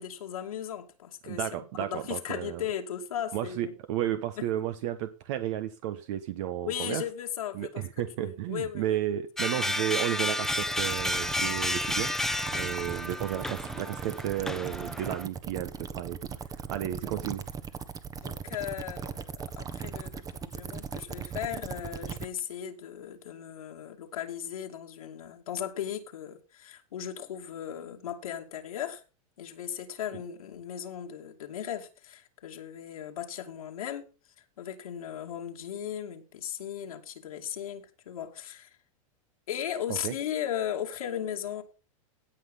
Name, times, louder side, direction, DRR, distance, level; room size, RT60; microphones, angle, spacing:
voice 1, 0.0-1.4 1.8-3.7 4.4-4.5 6.6-7.8 8.2-9.0 18.2-29.0 29.4-34.1 34.6-38.8 39.5-41.6, left 9 dB, 90° left, 2.5 m, -37 dB
voice 2, 1.2-2.6 3.3-7.0 7.5-12.1 12.5-16.3 16.7-17.4 40.0-40.1, right 12 dB, 60° right, 1.2 m, -33 dB
sound 1, 9.4-15.3, left 1 dB, ahead, 0.8 m, -31 dB
sound 2, 10.4-22.3, right 6 dB, 20° right, 1.2 m, -39 dB
17.0 x 5.8 x 5.5 m
hypercardioid pair, 125°, 18 cm